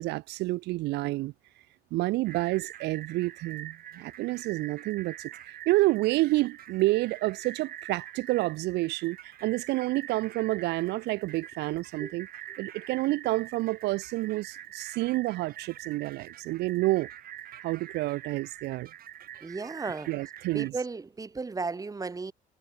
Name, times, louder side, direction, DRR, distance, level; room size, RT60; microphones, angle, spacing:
voice 1, 0.0-1.3 1.9-5.3 5.7-12.3 12.6-17.1 17.6-18.9 20.1-20.7, right 19 dB, 85° right, 2.7 m, -29 dB
sound 1, 2.2-20.7, right 11 dB, 60° right, 7.4 m, -45 dB
voice 2, 19.4-20.1 20.5-22.3, right 4 dB, 20° right, 2.4 m, -34 dB
cardioid pair, 110°, 17 cm